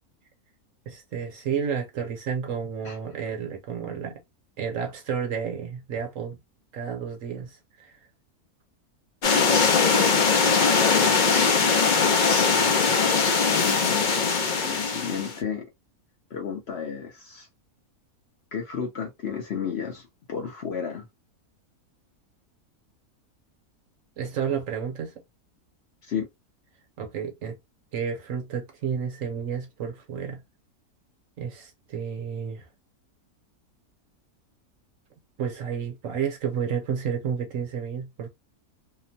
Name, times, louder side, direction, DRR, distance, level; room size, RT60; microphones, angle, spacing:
voice 1, 0.9-4.2 4.6-6.4 6.7-8.0 24.2-25.1 27.0-27.6 27.9-30.4 31.4-32.7 35.4-38.3, right 7 dB, 65° right, 1.1 m, -31 dB
sound 1, 9.2-15.4, left 5 dB, 70° left, 0.4 m, -21 dB
voice 2, 13.6-15.6 16.3-17.5 18.5-21.1 26.0-26.3, left 7 dB, 55° left, 0.8 m, -33 dB
2.9 x 2.1 x 2.6 m
omnidirectional pair, 1.6 m